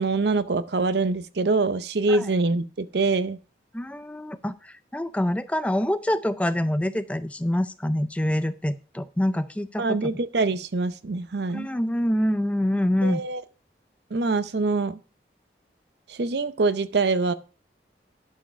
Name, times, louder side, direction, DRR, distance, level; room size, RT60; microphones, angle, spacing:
voice 1, 0.0-3.4 9.8-11.7 13.0-13.4 14.1-15.0 16.1-17.3, right 3 dB, 70° right, 0.6 m, -24 dB
voice 2, 3.7-10.2 11.5-13.2, left 1 dB, 5° left, 0.3 m, -26 dB
11.5 x 4.8 x 5.6 m
head